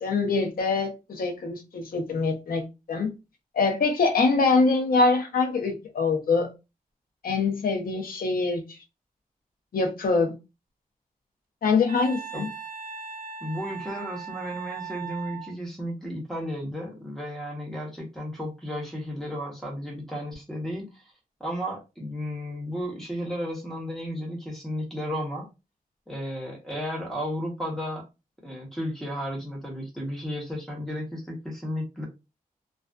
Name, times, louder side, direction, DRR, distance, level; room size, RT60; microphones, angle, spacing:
voice 1, 0.0-3.1 3.5-6.5 7.2-8.6 9.7-10.3 11.6-12.5, left 4 dB, 75° left, 0.7 m, -24 dB
Wind instrument woodwind instrument, 11.9-15.5, right 7 dB, 80° right, 0.4 m, -38 dB
voice 2, 13.4-21.0 21.4-25.5 26.1-28.0 28.4-32.1, equal, ahead, 0.8 m, -33 dB
2.4 x 2.3 x 2.3 m
wide cardioid pair, 170°, 15 cm